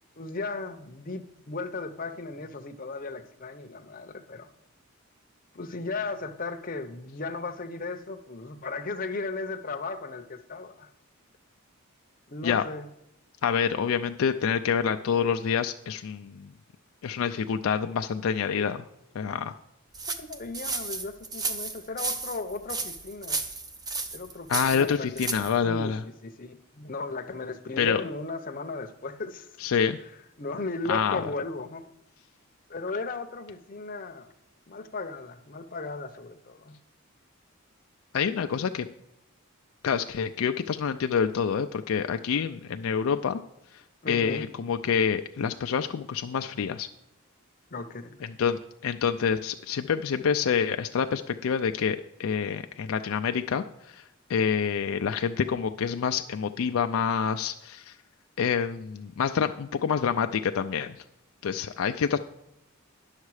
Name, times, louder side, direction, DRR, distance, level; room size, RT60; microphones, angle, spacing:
voice 1, 0.2-4.5 5.5-10.9 12.3-12.9 18.5-18.7 20.2-23.4 24.1-25.1 25.3-29.5 30.4-31.8 32.7-34.3 34.7-36.8 44.0-44.5 47.7-48.2, left 3 dB, 40° left, 6 dB, 0.7 m, -36 dB
voice 2, 13.4-16.5 17.0-18.8 19.2-19.5 24.5-26.0 27.8-28.0 29.6-30.0 30.9-31.2 38.1-38.9 39.8-43.4 44.1-46.9 48.4-54.0 54.3-57.9 58.4-61.0 61.4-62.2, left 7 dB, 70° left, 7 dB, 0.4 m, -27 dB
sound 1, 19.9-25.6, right 3 dB, 20° right, 0.5 m, -33 dB
10.5 x 6.5 x 4.8 m, 0.86 s
head